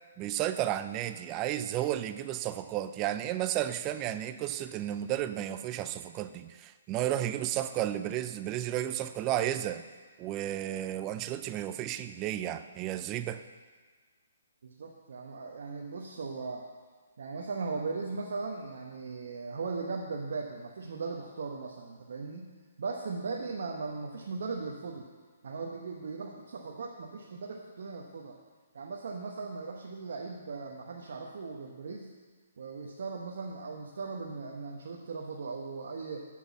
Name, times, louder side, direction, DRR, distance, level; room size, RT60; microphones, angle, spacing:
voice 1, 0.2-9.8 10.2-13.4, right 12 dB, 25° right, 11 dB, 0.4 m, -33 dB
voice 2, 14.6-16.6 17.2-22.5 22.8-25.1 25.4-28.3 28.7-32.1 32.6-36.2, right 4 dB, 65° right, 0 dB, 0.9 m, -38 dB
7.5 x 6.1 x 7.2 m, 1.5 s
hypercardioid pair, 145°, 0 cm